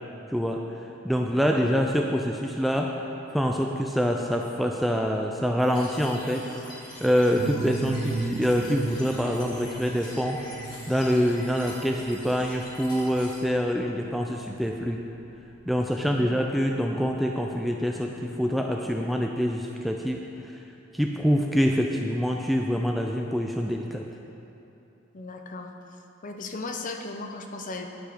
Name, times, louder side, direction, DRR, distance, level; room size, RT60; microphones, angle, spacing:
voice 1, 0.3-0.7 1.0-2.9 3.3-6.4 7.0-10.4 10.9-15.0 15.7-20.2 20.5-20.6 20.9-24.1, equal, ahead, 1 dB, 0.3 m, -25 dB
sound 1, 5.6-13.4, left 1 dB, 20° left, 1.9 m, -44 dB
sound 2, 7.4-16.8, right 4 dB, 75° right, 0.6 m, -38 dB
voice 2, 25.1-25.7 26.2-27.9, left 3 dB, 40° left, 4 dB, 0.6 m, -36 dB
9.9 x 6.0 x 4.9 m, 2.9 s
head